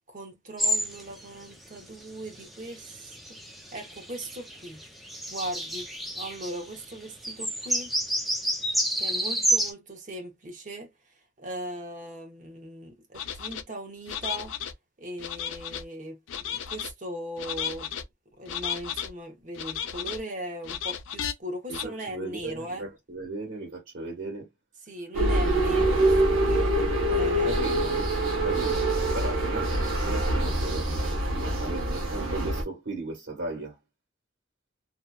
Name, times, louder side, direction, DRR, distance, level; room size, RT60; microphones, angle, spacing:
voice 1, 0.1-3.4 3.7-4.8 5.3-5.9 6.1-7.9 9.0-10.9 11.4-14.5 15.0-17.9 18.4-22.9 24.8-26.8 27.1-27.8 29.1-29.2, right 1 dB, 40° right, 0.7 m, -39 dB
sound 1, 0.6-1.0 1.4-1.5 2.2-6.6 7.0-7.1 7.2-9.7, right 1 dB, ahead, 0.4 m, -29 dB
sound 2, 13.2-13.6 14.1-14.7 15.2-15.8 16.3-16.9 17.4-18.0 18.5-19.1 19.6-20.2 20.6-21.3 21.7-21.9, left 9 dB, 75° left, 0.4 m, -34 dB
voice 2, 21.7-24.5 27.1-28.8 29.1-30.9 31.3-33.8, right 2 dB, 70° right, 1.2 m, -36 dB
sound 3, 25.1-32.6, right 1 dB, 90° right, 0.9 m, -25 dB
2.7 x 2.2 x 2.2 m
head